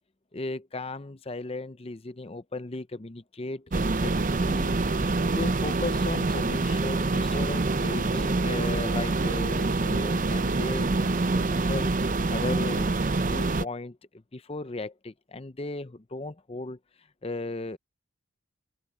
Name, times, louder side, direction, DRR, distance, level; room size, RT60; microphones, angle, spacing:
voice 1, 0.3-4.7 5.3-11.9 12.3-12.9 13.3-16.8 17.2-17.8, left 2 dB, 30° left, 0.7 m, -36 dB
sound 1, 3.7-13.7, right 3 dB, 40° right, 0.6 m, -26 dB
open air
head